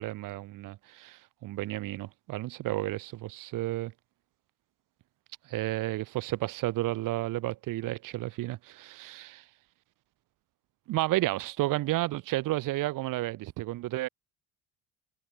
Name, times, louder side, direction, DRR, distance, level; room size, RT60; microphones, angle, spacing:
voice 1, 0.0-3.9 5.5-9.4 10.9-14.1, right 17 dB, 75° right, 7.0 m, -32 dB
cardioid pair, 165°, 33 cm